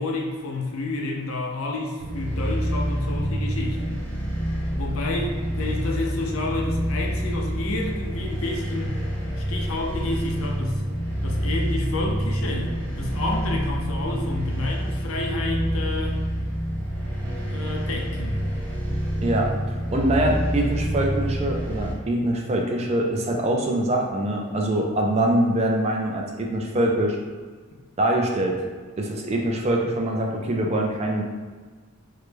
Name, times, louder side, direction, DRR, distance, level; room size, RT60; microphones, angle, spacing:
voice 1, 0.0-4.0 4.7-9.0 9.4-10.8 11.2-16.2 17.3-18.4, left 2 dB, 65° left, 0 dB, 0.5 m, -30 dB
sound 1, 2.0-21.9, equal, 5° left, 0.6 m, -27 dB
voice 2, 19.2-27.2 28.0-28.6 29.0-31.2, right 1 dB, 30° right, 0 dB, 0.3 m, -24 dB
3.1 x 2.1 x 3.2 m, 1.4 s
head